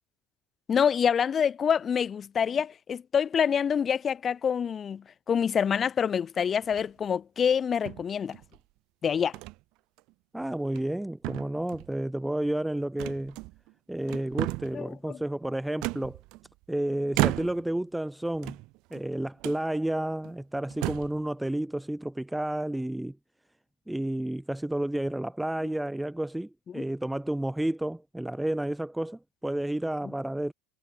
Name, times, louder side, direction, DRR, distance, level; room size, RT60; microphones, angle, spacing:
voice 1, 0.7-8.4 9.0-9.4 14.7-15.2 26.7-26.8, left 7 dB, 20° left, 4.8 m, -26 dB
sound 1, 6.6-7.1 7.9-8.6 9.3-9.6 10.0-10.1 10.6-11.0 11.2-11.9 13.0-13.7 14.1-14.8 15.8-16.6 17.1-17.8 18.3-19.0 19.4-19.6 20.2-20.3 20.7-21.2, right 23 dB, 50° right, 1.6 m, -33 dB
voice 2, 10.3-13.4 13.9-16.2 16.7-18.6 18.9-23.2 23.9-30.5, right 1 dB, 5° right, 2.1 m, -31 dB
supercardioid pair, 160°, 0 cm